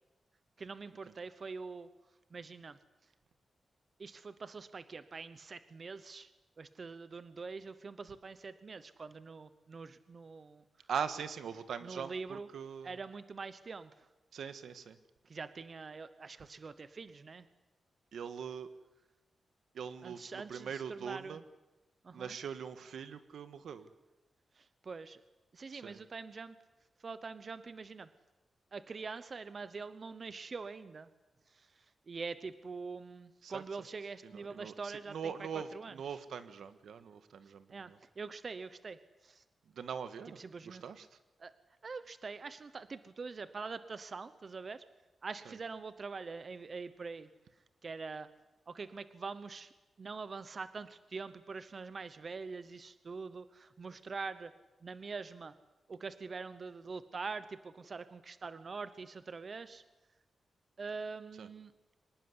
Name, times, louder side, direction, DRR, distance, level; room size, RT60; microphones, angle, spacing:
voice 1, 0.6-1.9 2.3-2.8 4.0-6.3 6.6-10.6 11.8-12.5 12.8-14.1 15.3-17.5 20.0-21.4 22.0-22.3 24.5-25.2 25.5-26.6 27.0-28.1 28.7-31.1 31.5-35.9 37.4-39.4 40.4-40.8 41.4-41.5 41.8-44.8 45.2-47.3 47.8-48.3 48.7-49.7 50.0-54.5 54.8-55.5 55.9-59.8 60.8-61.7, right 4 dB, 35° right, 13 dB, 0.9 m, -44 dB
voice 2, 10.9-13.0 14.3-15.0 18.1-18.7 19.7-21.4 22.1-23.9 25.7-26.0 33.4-33.6 34.2-38.0 39.7-41.2 45.4-45.6 61.4-61.5, right 7 dB, 85° right, 11 dB, 1.7 m, -42 dB
24.5 x 19.5 x 9.7 m, 1.1 s
wide cardioid pair, 175°, 0 cm